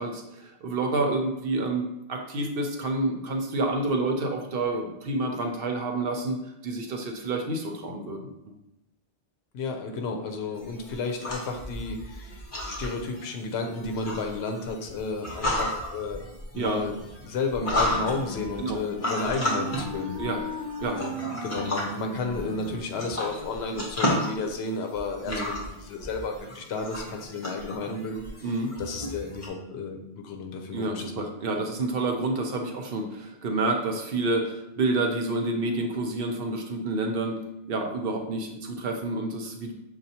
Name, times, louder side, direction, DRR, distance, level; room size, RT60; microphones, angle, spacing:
voice 1, 0.0-8.2 8.4-8.5 16.5-16.8 18.6-18.8 20.2-20.4 20.8-21.0 25.3-25.5 28.4-28.7 30.7-37.4 37.7-39.7, right 2 dB, 65° right, 3 dB, 0.8 m, -29 dB
voice 2, 9.5-16.2 16.5-16.9 17.2-20.2 20.9-21.1 21.4-28.3 28.8-31.3, left 3 dB, 75° left, 3 dB, 0.8 m, -32 dB
sound 1, 10.5-29.5, left 1 dB, 35° left, 1.1 m, -33 dB
Wind instrument woodwind instrument, 17.5-23.6, equal, 50° left, 1.4 m, -38 dB
6.4 x 2.3 x 2.8 m, 0.86 s
omnidirectional pair, 1.1 m